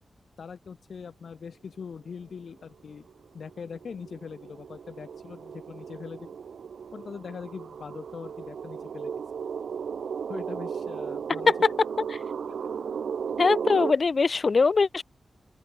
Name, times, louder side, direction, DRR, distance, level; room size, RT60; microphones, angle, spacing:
voice 1, 0.4-3.1 3.3-6.4 6.9-9.1 10.3-11.5 12.5-12.6, left 6 dB, 75° left, 0.8 m, -41 dB
sound 1, 2.5-2.6 3.1-13.9, right 7 dB, 85° right, 0.4 m, -35 dB
voice 2, 13.4-15.0, left 4 dB, 55° left, 0.3 m, -22 dB
open air
cardioid pair, 70°, 0 cm